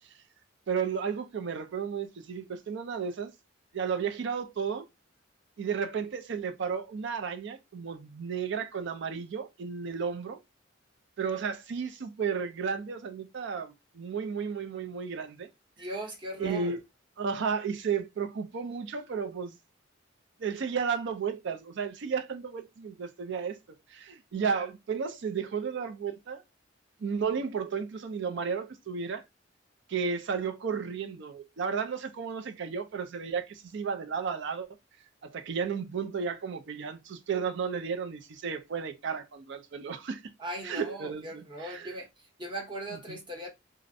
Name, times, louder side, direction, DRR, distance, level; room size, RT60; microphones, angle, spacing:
voice 1, 0.7-3.3 3.7-4.8 5.6-10.4 11.2-15.5 16.4-16.8 17.2-19.6 20.4-23.6 23.9-26.4 27.0-29.2 29.9-34.7 35.2-40.2 40.6-42.0 42.9-43.2, right 6 dB, 60° right, 0.4 m, -33 dB
voice 2, 15.8-16.8 40.4-42.1 42.4-43.5, right 1 dB, 25° right, 0.8 m, -38 dB
2.5 x 2.0 x 2.6 m
head